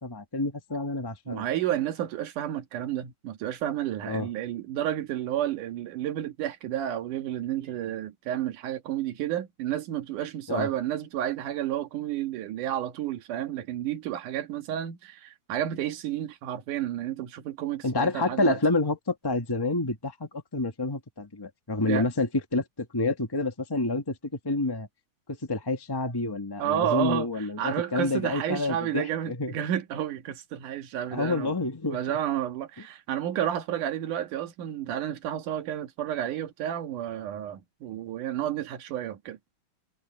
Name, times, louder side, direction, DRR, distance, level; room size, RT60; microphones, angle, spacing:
voice 1, 0.0-1.4 4.0-4.3 10.5-10.7 17.8-24.2 24.4-24.9 25.3-29.5 31.1-32.0, left 2 dB, 20° left, 0.6 m, -28 dB
voice 2, 1.3-18.6 21.8-22.1 26.6-31.5 31.9-39.4, right 11 dB, 85° right, 3.1 m, -31 dB
omnidirectional pair, 3.5 m